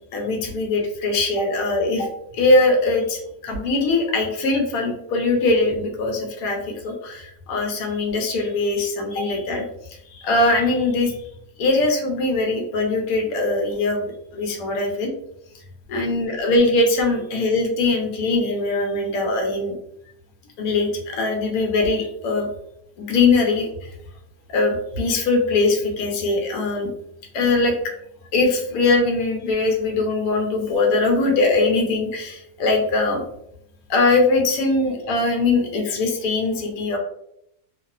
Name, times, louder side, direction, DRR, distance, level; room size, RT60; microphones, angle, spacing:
voice 1, 0.1-9.6 9.9-11.2 11.6-15.1 15.9-19.8 20.6-22.5 23.0-23.9 24.5-26.9 27.3-27.7 28.3-33.2 33.9-37.0, left 3 dB, 75° left, 2 dB, 1.0 m, -21 dB
2.8 x 2.1 x 2.3 m, 0.76 s
omnidirectional pair, 1.7 m